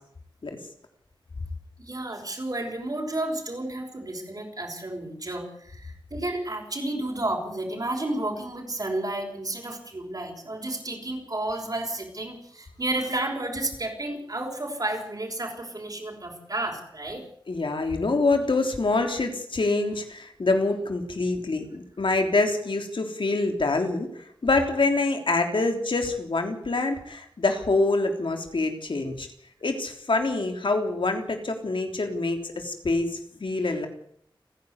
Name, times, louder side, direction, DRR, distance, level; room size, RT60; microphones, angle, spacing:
voice 1, 1.8-17.2, right 1 dB, 45° right, -1 dB, 5.7 m, -31 dB
voice 2, 17.5-29.3 29.6-33.9, left 3 dB, 75° left, 4 dB, 3.4 m, -26 dB
30.0 x 11.0 x 8.2 m, 0.68 s
wide cardioid pair, 80°, 9 cm